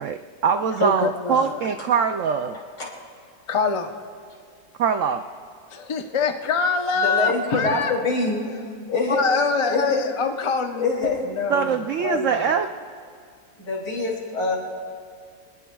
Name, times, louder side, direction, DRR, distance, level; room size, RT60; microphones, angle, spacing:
voice 1, 0.0-2.6 4.8-5.2 11.5-12.7, right 6 dB, 85° right, 7 dB, 0.6 m, -23 dB
voice 2, 0.8-1.6 3.5-3.9 5.7-7.9 8.5-8.6 9.1-12.5, left 4 dB, 45° left, 4 dB, 0.4 m, -25 dB
voice 3, 2.5-2.9 7.0-8.4 8.9-9.2 9.6-10.0 10.7-11.2 13.6-14.6, left 3 dB, 75° left, -3 dB, 3.7 m, -25 dB
26.0 x 20.0 x 2.3 m, 2.1 s
omnidirectional pair, 1.9 m